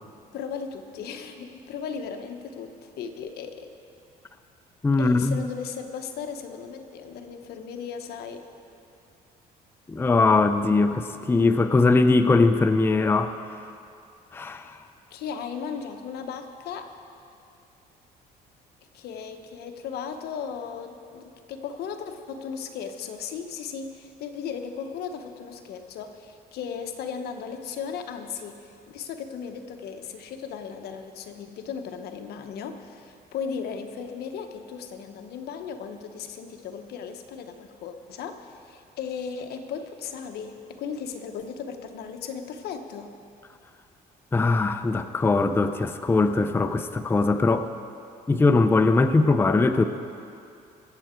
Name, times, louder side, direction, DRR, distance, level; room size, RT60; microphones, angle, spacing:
voice 1, 0.3-3.7 5.0-8.5 15.1-17.0 18.9-43.1, left 6 dB, 70° left, 6 dB, 1.1 m, -36 dB
voice 2, 4.8-5.4 9.9-13.4 14.3-14.8 44.3-47.7 48.3-49.9, left 3 dB, 15° left, 9 dB, 0.5 m, -21 dB
23.0 x 7.7 x 4.5 m, 2.5 s
cardioid pair, 110°, 17 cm